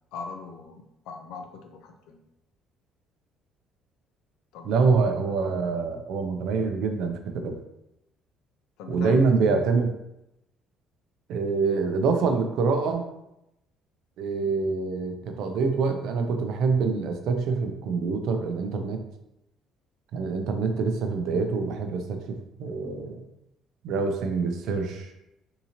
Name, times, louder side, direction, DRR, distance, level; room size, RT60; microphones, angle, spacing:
voice 1, 0.1-2.2 4.5-5.0 8.8-9.6, left 4 dB, 80° left, 5 dB, 0.5 m, -41 dB
voice 2, 4.6-7.6 8.9-9.9 11.3-13.0 14.2-19.0 20.1-23.2 23.8-25.1, right 4 dB, 65° right, 5 dB, 0.4 m, -25 dB
3.7 x 2.8 x 2.9 m, 0.86 s
cardioid pair, 170°, 0 cm